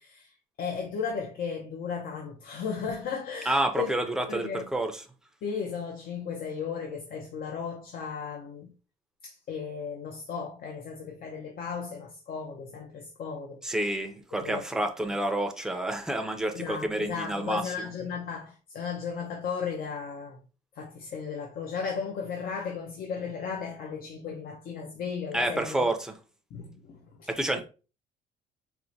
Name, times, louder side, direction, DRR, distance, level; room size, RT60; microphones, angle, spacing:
voice 1, 0.0-4.7 5.4-8.7 9.2-13.7 14.3-14.6 16.5-20.4 20.7-25.8 26.5-27.3, left 6 dB, 60° left, 0.7 m, -35 dB
voice 2, 3.5-5.0 13.6-17.9 25.3-26.2 27.3-27.6, right 1 dB, 5° right, 0.5 m, -29 dB
4.4 x 2.1 x 2.6 m
cardioid pair, 110°, 17 cm